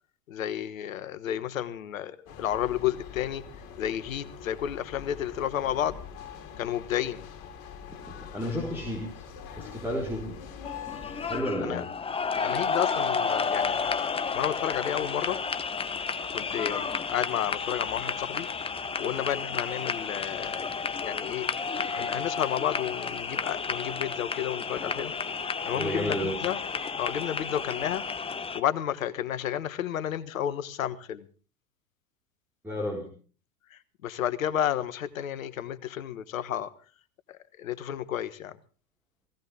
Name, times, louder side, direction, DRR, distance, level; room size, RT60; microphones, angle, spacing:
voice 1, 0.3-3.5 3.8-6.0 6.6-7.3 11.6-11.8 12.4-13.9 14.3-15.4 16.3-18.5 19.0-25.1 25.6-26.6 27.0-28.0 28.5-31.3 33.7-36.7 37.3-38.6, left 10 dB, 75° left, 1.4 m, -31 dB
sound 1, 2.3-11.4, left 7 dB, 45° left, 3.5 m, -44 dB
voice 2, 8.1-9.3 9.6-10.4 11.3-11.9 25.7-26.4 32.6-33.1, equal, 5° right, 4.4 m, -32 dB
sound 2, 10.6-28.6, left 5 dB, 15° left, 1.1 m, -31 dB
17.5 x 17.0 x 3.5 m
hypercardioid pair, 100°, 41 cm